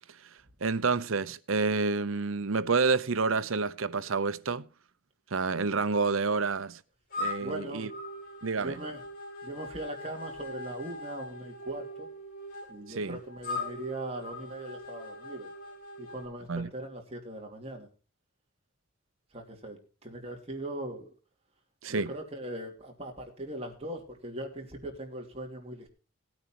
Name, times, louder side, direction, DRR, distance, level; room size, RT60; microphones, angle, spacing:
voice 1, 0.6-4.7 5.3-6.8 7.2-7.9 8.4-8.8 12.9-13.2 16.5-16.7 21.8-22.1, right 4 dB, 85° right, 0.8 m, -29 dB
sound 1, 7.1-16.3, left 2 dB, 45° left, 8.0 m, -41 dB
voice 2, 7.4-7.9 8.6-9.0 9.4-12.1 12.7-15.5 16.0-17.9 19.3-21.1 21.9-25.9, right 1 dB, 30° right, 2.9 m, -40 dB
19.0 x 9.0 x 3.0 m
head